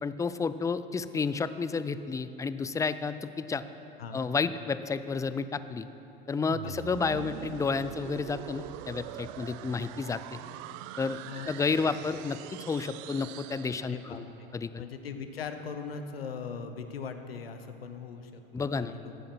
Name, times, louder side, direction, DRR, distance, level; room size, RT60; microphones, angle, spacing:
voice 1, 0.0-3.6 4.1-5.9 6.3-10.2 11.0-11.2 11.5-14.3 14.5-14.8 18.5-18.9, left 5 dB, 10° left, 13 dB, 0.4 m, -31 dB
sound 1, 6.5-14.4, right 15 dB, 55° right, 0.4 m, -43 dB
voice 2, 11.3-11.9 13.8-14.2 14.8-19.3, left 6 dB, 90° left, 8 dB, 1.0 m, -40 dB
15.0 x 8.7 x 6.1 m, 3.0 s
hypercardioid pair, 85°, 29 cm